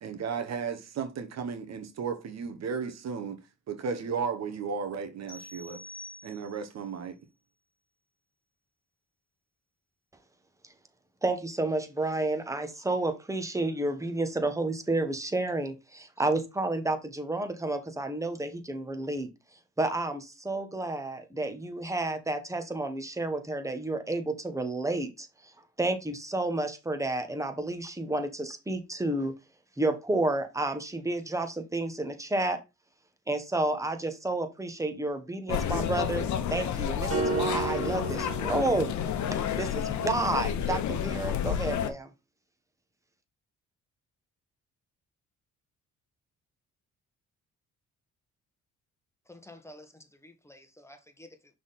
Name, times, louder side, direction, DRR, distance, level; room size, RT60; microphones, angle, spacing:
voice 1, 0.0-3.4 3.7-5.8 6.2-7.2, right 6 dB, 60° right, 1.1 m, -34 dB
sound 1, 5.3-6.8, left 1 dB, 30° left, 2.8 m, -46 dB
voice 2, 11.2-19.3 19.8-25.3 25.8-29.3 29.8-32.6 33.3-38.9 39.3-42.1, right 2 dB, 10° right, 1.2 m, -30 dB
sound 2, 35.5-41.9, left 9 dB, 70° left, 0.9 m, -30 dB
sound 3, 37.1-39.4, right 4 dB, 45° right, 2.4 m, -33 dB
voice 3, 49.3-51.6, left 1 dB, 10° left, 1.2 m, -51 dB
6.0 x 3.9 x 4.1 m
cardioid pair, 90°, 30 cm